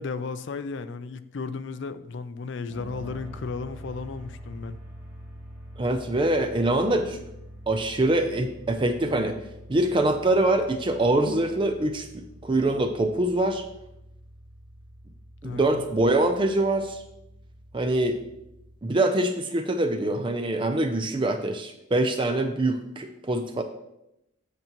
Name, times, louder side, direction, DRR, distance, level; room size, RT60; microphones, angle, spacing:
voice 1, 0.0-4.8 15.4-15.8, left 4 dB, 60° left, 0.4 m, -34 dB
sound 1, 2.7-18.8, equal, 10° right, 2.1 m, -45 dB
voice 2, 5.8-7.2 7.7-9.4 9.7-13.6 15.4-17.0 17.7-18.2 18.8-23.6, right 1 dB, 25° right, 0.4 m, -24 dB
8.0 x 7.0 x 3.0 m
head